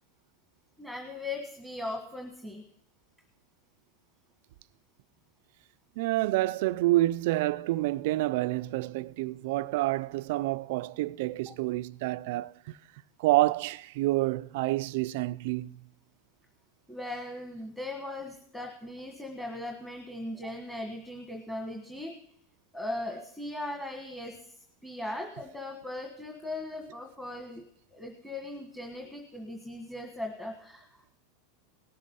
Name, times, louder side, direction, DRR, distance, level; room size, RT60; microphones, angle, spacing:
voice 1, 0.8-2.6 11.5-11.6 16.9-22.1 22.7-24.5 24.8-27.6 27.9-30.9, left 1 dB, 5° left, 1.6 m, -38 dB
voice 2, 6.0-12.5 13.2-15.8, right 17 dB, 65° right, 0.4 m, -28 dB
18.0 x 7.4 x 5.6 m
supercardioid pair, 140°, 0 cm